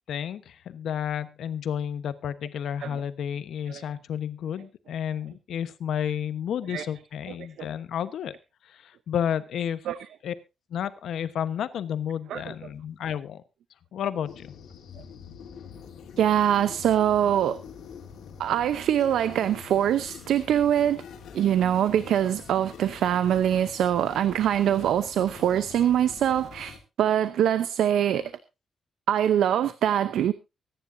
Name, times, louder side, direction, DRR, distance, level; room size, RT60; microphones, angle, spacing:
voice 1, 0.1-8.3 8.7-9.8 10.2-10.3 10.7-13.4 13.9-14.5, left 9 dB, 70° left, 1.1 m, -31 dB
sound 1, 14.2-26.8, left 7 dB, 85° left, 2.7 m, -45 dB
voice 2, 16.2-17.6 18.4-21.0 21.3-28.3 29.1-30.3, right 10 dB, 85° right, 0.7 m, -23 dB
24.0 x 10.0 x 2.7 m
wide cardioid pair, 175°, 0 cm